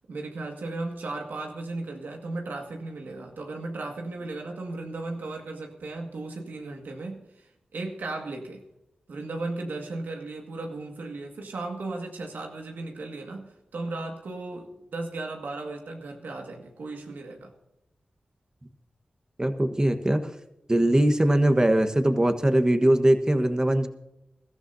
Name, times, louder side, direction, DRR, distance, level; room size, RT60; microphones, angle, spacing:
voice 1, 0.1-8.6 9.1-17.5, right 2 dB, 85° right, 2 dB, 2.0 m, -36 dB
voice 2, 19.4-20.3 20.7-23.9, right 1 dB, 20° right, 8 dB, 1.3 m, -21 dB
22.0 x 13.5 x 2.8 m, 0.90 s
cardioid pair, 55°, 3 cm